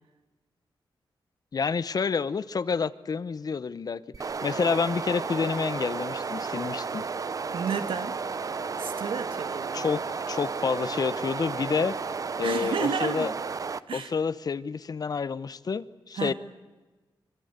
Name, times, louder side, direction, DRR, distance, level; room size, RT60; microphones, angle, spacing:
voice 1, 1.5-7.0 9.7-12.0 12.4-13.3 13.9-16.3, left 5 dB, 50° left, 17 dB, 0.9 m, -29 dB
sound 1, 4.1-13.8, right 5 dB, 40° right, 0.8 m, -33 dB
voice 2, 7.5-8.2 8.8-9.7 12.4-13.3 13.9-14.1 16.2-16.3, right 6 dB, 85° right, 9 dB, 2.2 m, -31 dB
25.5 x 25.0 x 8.1 m, 1.2 s
wide cardioid pair, 130°, 9 cm